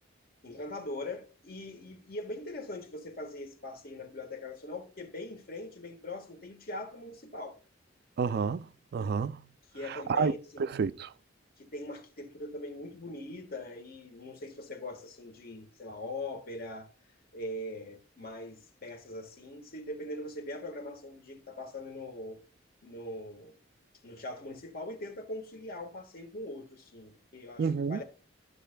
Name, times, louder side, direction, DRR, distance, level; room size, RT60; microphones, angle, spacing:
voice 1, 0.4-7.6 9.7-10.7 11.6-16.9 17.3-22.4 22.8-23.6 24.0-28.0, left 1 dB, 50° left, 1.4 m, -41 dB
voice 2, 8.2-8.7 8.9-9.4 9.9-10.3 10.7-11.1 27.6-28.0, right 5 dB, 55° right, 0.3 m, -29 dB
13.5 x 6.6 x 2.2 m
head